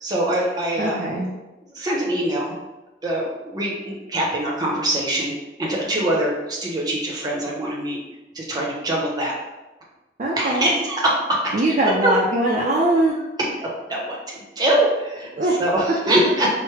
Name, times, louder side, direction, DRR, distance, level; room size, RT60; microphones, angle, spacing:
voice 1, 0.0-1.0 1.7-2.6 3.0-5.3 5.6-8.0 8.3-9.3 10.4-11.4 11.7-11.8 12.0-12.1 13.8-15.3 15.6-16.5, right 1 dB, 20° right, -3 dB, 0.8 m, -23 dB
voice 2, 0.8-1.3 10.2-10.7 11.5-13.1 15.4-15.5, right 1 dB, 40° right, -4 dB, 0.4 m, -21 dB
4.6 x 2.1 x 3.2 m, 1.1 s
head